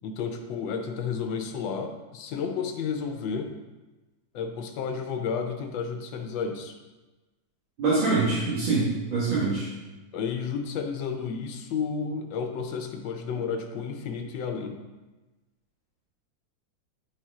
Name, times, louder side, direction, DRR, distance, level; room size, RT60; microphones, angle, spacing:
voice 1, 0.0-3.5 4.3-6.8 10.1-14.8, left 6 dB, 80° left, 5 dB, 1.5 m, -32 dB
voice 2, 7.8-9.7, right 3 dB, 90° right, -11 dB, 2.6 m, -24 dB
11.0 x 4.4 x 3.7 m, 1.2 s
omnidirectional pair, 2.0 m